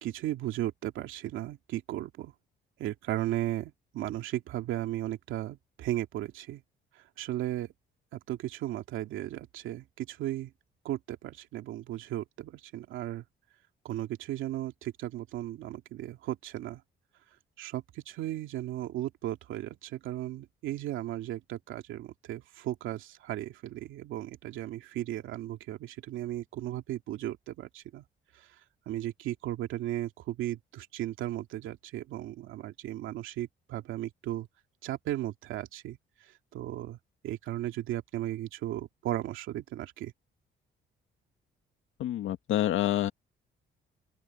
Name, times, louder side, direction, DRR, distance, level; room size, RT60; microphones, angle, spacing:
voice 1, 0.0-2.3 2.8-6.6 6.9-7.7 8.1-10.5 10.8-13.2 13.8-16.8 17.6-28.0 28.3-28.5 28.9-34.5 34.8-37.0 37.2-40.1, right 14 dB, 90° right, 2.4 m, -36 dB
voice 2, 42.0-43.1, left 12 dB, 80° left, 1.7 m, -27 dB
open air
cardioid pair, 90°, 20 cm